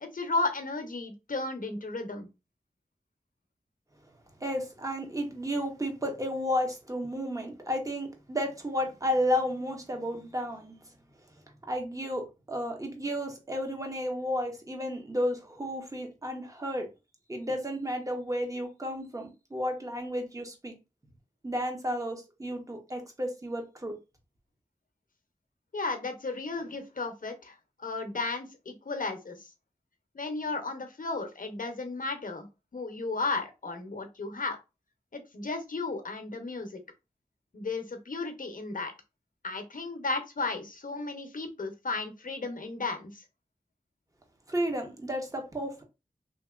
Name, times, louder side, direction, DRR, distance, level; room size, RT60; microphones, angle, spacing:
voice 1, 0.0-2.3 25.7-29.5 30.1-32.5 32.7-34.6 35.1-36.7 37.5-38.9 39.4-43.2, left 3 dB, 65° left, 0.7 m, -34 dB
voice 2, 4.4-10.8 11.7-16.9 17.3-20.7 21.4-24.0 44.5-45.8, equal, 20° right, 1.0 m, -32 dB
2.9 x 2.8 x 2.4 m
cardioid pair, 40°, 15 cm